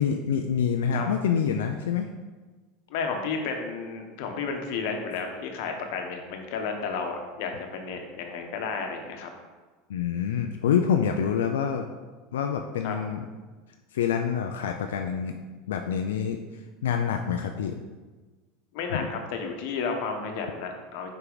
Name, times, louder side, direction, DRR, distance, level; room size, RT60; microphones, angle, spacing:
voice 1, 0.0-2.1 9.9-11.9 12.3-13.2 13.9-15.3 15.7-16.4 16.8-17.8 18.9-19.1, left 7 dB, 90° left, 4 dB, 0.4 m, -26 dB
voice 2, 2.9-9.3 12.8-13.0 18.7-21.1, left 5 dB, 70° left, 4 dB, 1.0 m, -32 dB
5.7 x 4.7 x 3.9 m, 1.3 s
supercardioid pair, 110°, 0 cm